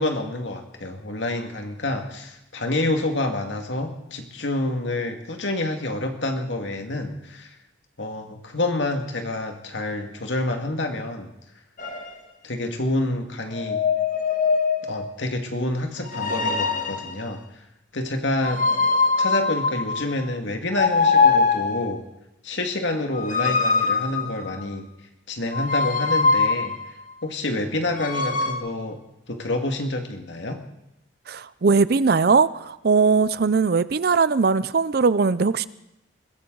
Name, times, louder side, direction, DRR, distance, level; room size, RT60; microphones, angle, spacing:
voice 1, 0.0-7.5 8.0-11.3 12.4-13.8 14.9-17.4 17.9-18.6 19.2-22.0 22.4-24.9 25.3-26.7 27.2-29.0 29.3-30.6, left 2 dB, 75° left, 4 dB, 2.1 m, -28 dB
sound 1, 11.8-12.1 13.5-15.1 16.0-17.2 18.4-20.2 20.7-21.9 23.1-24.7 25.5-26.9 27.9-28.5, left 4 dB, 45° left, 1.7 m, -22 dB
voice 2, 31.3-35.7, right 4 dB, 55° right, 17 dB, 0.5 m, -20 dB
21.5 x 16.0 x 4.0 m, 0.86 s
head